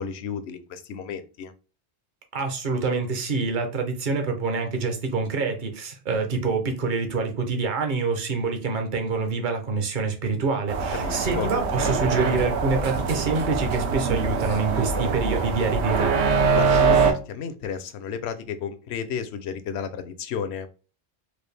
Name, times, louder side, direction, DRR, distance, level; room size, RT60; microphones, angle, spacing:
voice 1, 0.0-1.5 10.9-11.5 16.5-20.7, left 7 dB, 80° left, 0.9 m, -32 dB
voice 2, 2.3-16.1, right 4 dB, 50° right, 0.9 m, -26 dB
sound 1, 10.7-17.1, right 5 dB, 85° right, 0.9 m, -23 dB
4.7 x 2.3 x 3.3 m
omnidirectional pair, 1.1 m